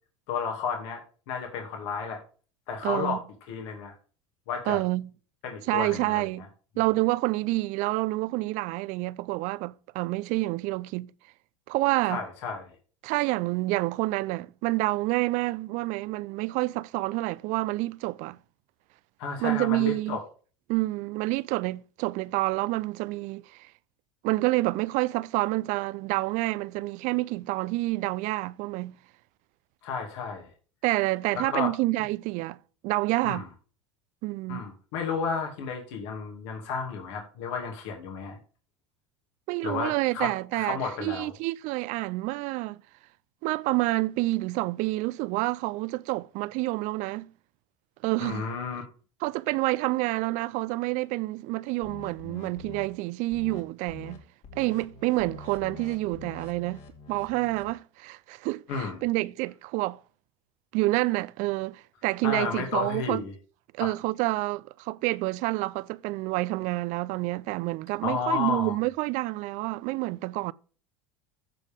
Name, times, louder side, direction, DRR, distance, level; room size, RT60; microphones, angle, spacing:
voice 1, 0.3-2.2 2.7-3.2 3.5-3.9 4.5-4.8 5.4-6.3 12.1-12.7 19.2-20.2 29.8-30.5 31.3-31.7 33.2-33.5 34.5-38.4 39.6-41.3 48.2-48.8 58.7-59.0 62.2-63.3 63.8-63.9 68.0-68.7, left 5 dB, 70° left, 2.5 m, -32 dB
voice 2, 2.8-3.2 4.7-5.1 5.7-6.5 6.8-11.1 11.7-12.2 13.0-18.4 19.4-20.2 20.7-23.7 24.2-29.0 30.8-32.6 32.8-33.5 34.2-34.6 39.5-42.8 43.4-47.3 48.0-48.5 49.2-54.2 54.6-56.8 57.1-60.0 60.7-63.2 63.7-70.5, right 20 dB, 55° right, 0.5 m, -28 dB
sound 1, 51.8-52.9 53.3-53.6 53.9-54.2 54.4-57.7, left 5 dB, 55° left, 2.4 m, -45 dB
14.5 x 5.2 x 3.6 m
hypercardioid pair, 80°, 15 cm